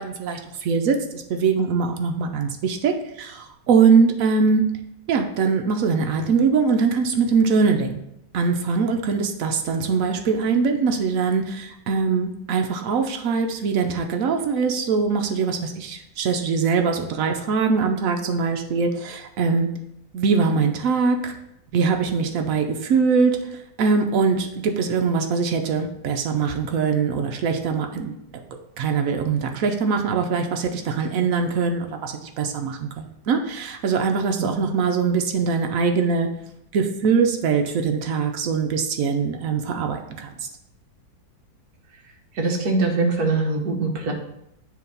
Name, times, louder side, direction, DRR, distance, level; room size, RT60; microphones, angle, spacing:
voice 1, 0.0-4.6 5.1-8.0 8.3-19.7 20.1-21.3 21.7-28.1 28.8-36.3 36.7-40.5, right 5 dB, 75° right, 4 dB, 0.7 m, -22 dB
voice 2, 34.4-34.7 42.3-44.1, right 3 dB, 60° right, 2 dB, 1.4 m, -23 dB
7.7 x 2.8 x 5.2 m, 0.80 s
omnidirectional pair, 2.1 m